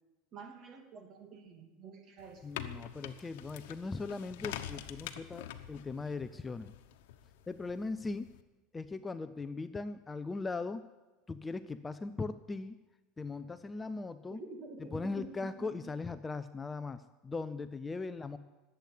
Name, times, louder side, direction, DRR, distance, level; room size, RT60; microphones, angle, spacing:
voice 1, 0.3-2.5 14.3-15.9, right 4 dB, 40° right, 5 dB, 2.7 m, -49 dB
sound 1, 2.2-8.4, left 11 dB, 85° left, 1.0 m, -46 dB
voice 2, 2.4-6.7 7.5-8.3 8.7-10.8 11.3-12.8 13.2-14.4 14.9-18.4, left 3 dB, 15° left, 11 dB, 0.5 m, -39 dB
20.0 x 8.3 x 8.4 m, 1.2 s
supercardioid pair, 135°, 0 cm